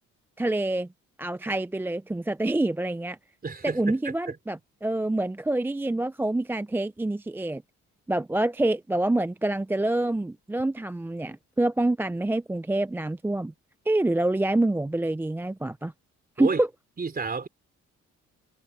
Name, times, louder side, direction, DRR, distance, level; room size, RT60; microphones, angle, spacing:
voice 1, 0.4-0.9 1.2-3.2 3.6-7.6 8.1-13.5 13.9-15.9 16.4-16.7, right 2 dB, 5° right, 0.4 m, -26 dB
voice 2, 3.4-4.4 16.4-16.6 17.0-17.5, right 4 dB, 30° right, 3.9 m, -31 dB
cardioid pair, 90°, 30 cm